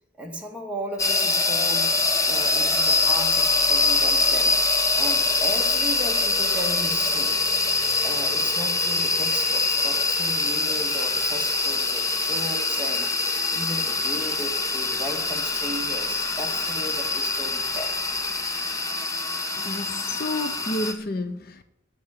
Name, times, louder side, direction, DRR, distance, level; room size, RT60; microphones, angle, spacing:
voice 1, 0.2-7.4 8.0-18.0, equal, 5° right, 2.2 m, -36 dB
sound 1, 1.0-20.9, left 3 dB, 15° left, 1.2 m, -24 dB
voice 2, 19.5-21.6, left 1 dB, 50° left, 0.8 m, -30 dB
9.9 x 9.7 x 8.2 m
head